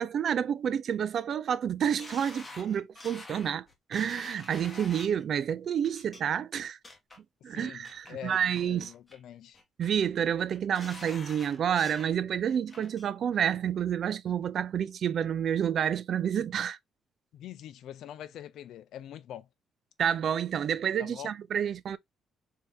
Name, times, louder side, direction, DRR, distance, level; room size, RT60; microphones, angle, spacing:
voice 1, 0.0-6.8 7.4-8.9 9.8-16.8 20.0-22.0, right 8 dB, 60° right, 0.3 m, -29 dB
sound 1, 2.0-5.2 5.8-6.2 6.6-7.2 7.6-8.1 8.5-9.2 9.5-10.1 10.5-12.1 12.5-13.1 13.5-13.6, left 2 dB, 25° left, 1.1 m, -47 dB
voice 2, 7.5-9.6 17.3-19.5 21.0-21.3, left 10 dB, 80° left, 0.5 m, -44 dB
3.4 x 2.8 x 3.2 m
cardioid pair, 90°, 0 cm